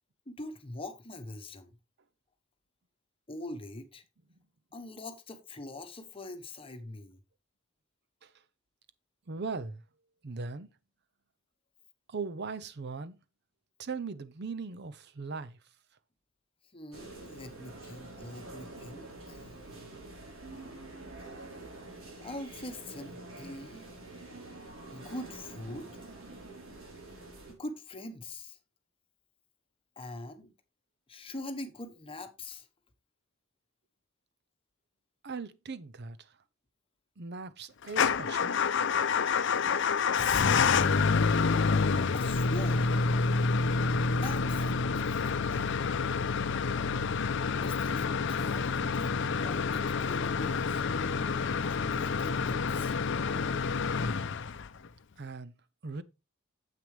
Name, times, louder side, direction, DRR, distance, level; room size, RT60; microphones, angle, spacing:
voice 1, 0.3-1.7 3.3-4.0 4.7-7.2 16.7-19.5 22.2-23.9 24.9-26.0 27.5-28.6 30.0-30.5 31.1-32.7 40.1-41.5 42.1-42.9 44.0-45.8 47.6-50.8 51.6-53.0, left 2 dB, 25° left, 1.2 m, -43 dB
voice 2, 9.3-9.8 10.2-10.7 12.1-13.2 13.8-15.6 35.2-36.2 37.2-38.6 55.2-55.5 55.8-56.0, right 4 dB, 55° right, 0.6 m, -39 dB
sound 1, 16.9-27.5, right 2 dB, 85° right, 4.0 m, -47 dB
Motor vehicle (road) / Engine starting / Idling, 37.9-54.9, left 5 dB, 60° left, 0.6 m, -28 dB
9.3 x 7.6 x 3.3 m
head